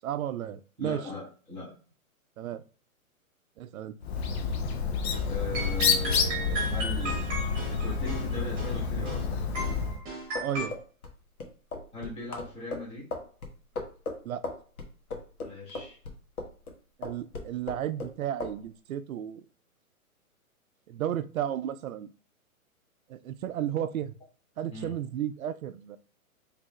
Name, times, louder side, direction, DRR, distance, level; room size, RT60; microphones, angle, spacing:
voice 1, 0.0-1.1 2.4-2.6 3.6-3.9 10.4-10.8 14.2-14.5 17.0-19.4 20.9-22.1 23.1-24.1 24.6-26.0, right 10 dB, 75° right, 0.6 m, -33 dB
voice 2, 0.8-1.7 5.2-7.2 7.7-9.4 11.9-13.1 15.4-16.0 24.7-25.0, left 2 dB, 15° left, 1.5 m, -38 dB
Bird, 4.0-10.0, left 5 dB, 50° left, 0.7 m, -29 dB
sound 1, 5.1-5.3 5.5-9.3 9.5-10.7, right 2 dB, 20° right, 1.8 m, -36 dB
sound 2, 10.2-16.7 17.0-18.1 18.4-18.6, left 3 dB, 90° left, 1.2 m, -37 dB
4.7 x 3.3 x 2.3 m
hypercardioid pair, 135°, 42 cm